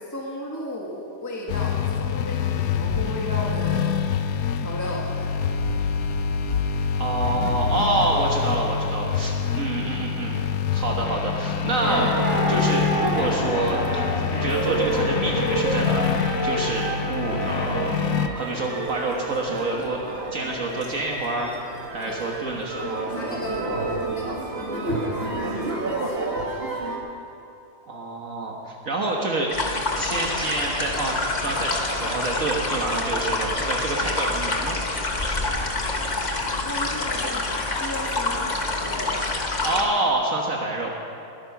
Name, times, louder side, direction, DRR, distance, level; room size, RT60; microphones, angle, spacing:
voice 1, 0.0-4.0 4.6-5.3 22.1-22.2 22.8-26.3 36.7-39.3, left 1 dB, 10° left, -3 dB, 1.8 m, -35 dB
sound 1, 1.5-18.3, left 6 dB, 75° left, 1.1 m, -26 dB
voice 2, 7.0-10.4 10.7-13.8 14.1-20.0 20.3-21.5 21.9-23.2 27.9-29.5 29.9-34.8 39.6-40.9, right 2 dB, 65° right, -1 dB, 1.8 m, -27 dB
sound 2, 11.8-27.0, right 2 dB, 40° right, 2.2 m, -29 dB
sound 3, 29.5-39.8, left 2 dB, 30° left, 1.3 m, -27 dB
21.5 x 9.7 x 5.9 m, 2.7 s
omnidirectional pair, 1.6 m